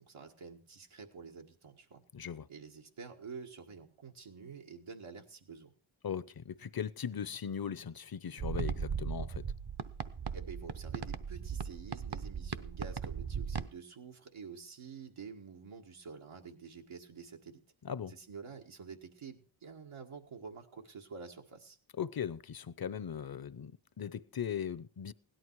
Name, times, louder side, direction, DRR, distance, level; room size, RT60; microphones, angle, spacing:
voice 1, 0.0-2.0 2.5-5.7 10.3-17.6 18.1-21.8, right 5 dB, 90° right, 1.9 m, -49 dB
voice 2, 2.1-2.5 6.0-9.5 17.8-18.1 22.0-25.1, left 8 dB, 50° left, 0.7 m, -39 dB
sound 1, 8.4-13.7, right 6 dB, 55° right, 0.9 m, -38 dB
17.0 x 11.5 x 4.7 m
wide cardioid pair, 70°, 47 cm